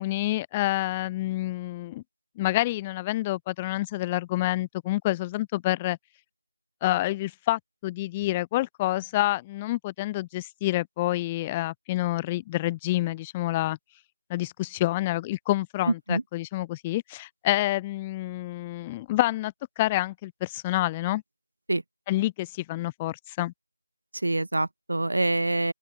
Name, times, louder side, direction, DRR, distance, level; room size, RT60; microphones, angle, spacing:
voice 1, 0.0-2.0 2.4-6.0 6.8-13.8 14.3-21.2 22.1-23.5, left 17 dB, 10° left, 2.4 m, -28 dB
voice 2, 15.9-16.2 21.7-21.8 24.1-25.7, right 2 dB, 65° right, 2.2 m, -26 dB
open air
figure-of-eight pair, 170°, 0 cm